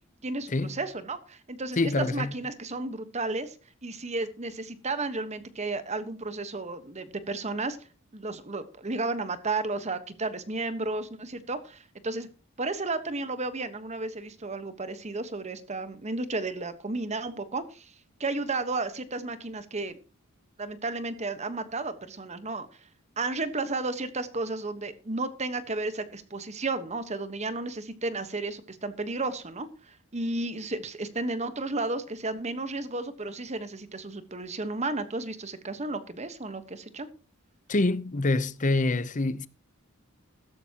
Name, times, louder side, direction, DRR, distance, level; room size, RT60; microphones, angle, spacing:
voice 1, 0.2-3.6 3.8-7.8 8.1-12.3 12.6-17.9 18.2-20.0 20.6-22.7 23.2-37.1, right 3 dB, 30° right, 1.2 m, -33 dB
voice 2, 1.8-2.3 37.7-39.5, left 2 dB, 35° left, 0.7 m, -26 dB
15.5 x 13.5 x 2.9 m
head